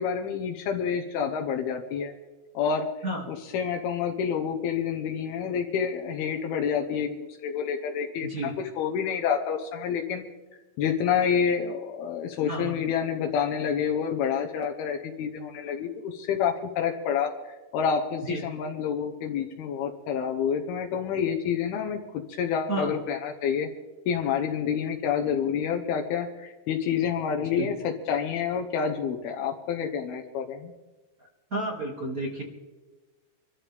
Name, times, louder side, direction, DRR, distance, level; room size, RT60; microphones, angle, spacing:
voice 1, 0.0-2.1 2.5-2.9 3.3-10.3 10.8-22.0 22.3-23.7 24.1-30.7, left 7 dB, 85° left, 3 dB, 3.0 m, -28 dB
voice 2, 8.2-8.5 12.5-12.8 18.3-18.4 22.7-22.9 27.5-27.7 31.5-32.4, right 1 dB, 30° right, -1 dB, 2.0 m, -31 dB
26.0 x 13.0 x 3.5 m, 1.2 s
omnidirectional pair, 4.4 m